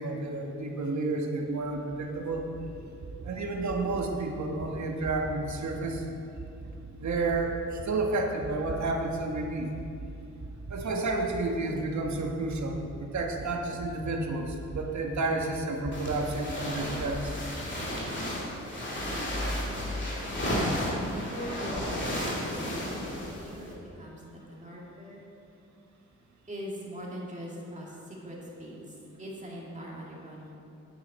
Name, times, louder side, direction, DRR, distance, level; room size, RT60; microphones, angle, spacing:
voice 1, 0.0-2.5 3.2-6.0 7.0-9.7 10.7-17.4, right 2 dB, 70° right, 2 dB, 1.3 m, -31 dB
sound 1, 1.6-9.5 9.7-17.2, right 3 dB, 50° right, 1.4 m, -43 dB
sound 2, 15.9-23.7, equal, 40° left, 2.5 m, -33 dB
sound 3, 19.0-21.8, left 1 dB, 20° left, 0.7 m, -38 dB
voice 2, 21.0-25.3 26.5-28.8 29.2-30.6, equal, 25° right, -4 dB, 2.3 m, -42 dB
9.9 x 9.6 x 4.2 m, 2.7 s
wide cardioid pair, 105°, 29 cm